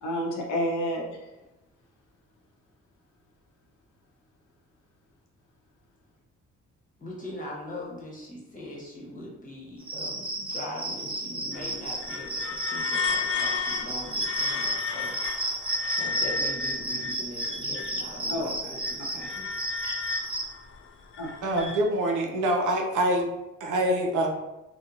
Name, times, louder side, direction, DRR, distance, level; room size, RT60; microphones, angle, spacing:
voice 1, 0.0-1.2 18.3-18.7 19.0-19.3 19.8-19.9 21.2-21.3, equal, 70° left, -1 dB, 0.7 m, -30 dB
voice 2, 7.0-15.1 16.0-19.5, left 1 dB, 25° left, -4 dB, 1.1 m, -41 dB
Cricket, 9.8-20.4, right 1 dB, 15° right, 0.7 m, -32 dB
sound 1, 11.5-18.1 18.5-21.8, left 5 dB, 40° left, 0.4 m, -33 dB
voice 3, 21.4-23.3 23.6-24.3, right 1 dB, 70° right, 2 dB, 0.6 m, -25 dB
2.8 x 2.0 x 2.5 m, 0.98 s
supercardioid pair, 60°, 31 cm